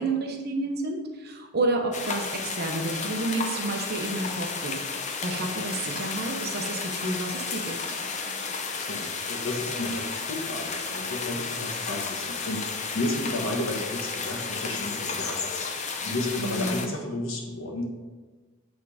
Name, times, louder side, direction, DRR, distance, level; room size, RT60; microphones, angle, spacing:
voice 1, 0.0-4.7 5.2-7.8 16.4-16.9, right 2 dB, 50° right, 2 dB, 1.0 m, -30 dB
sound 1, 1.9-16.9, left 4 dB, 35° left, 0.6 m, -33 dB
voice 2, 8.8-15.5 15.8-17.9, left 2 dB, 70° left, 1 dB, 1.4 m, -32 dB
8.4 x 3.6 x 5.0 m, 1.3 s
head